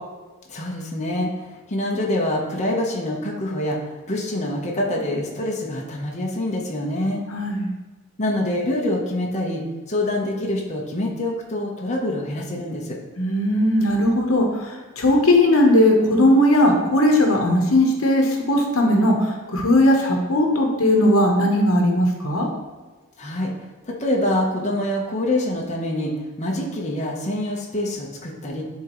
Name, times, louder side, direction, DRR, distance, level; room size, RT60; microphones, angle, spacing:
voice 1, 0.5-7.2 8.2-13.0 23.2-28.6, left 1 dB, 35° left, -2 dB, 0.9 m, -25 dB
voice 2, 7.3-7.7 13.2-22.5, left 1 dB, 75° left, 1 dB, 1.0 m, -18 dB
10.5 x 3.8 x 3.0 m, 1.3 s
head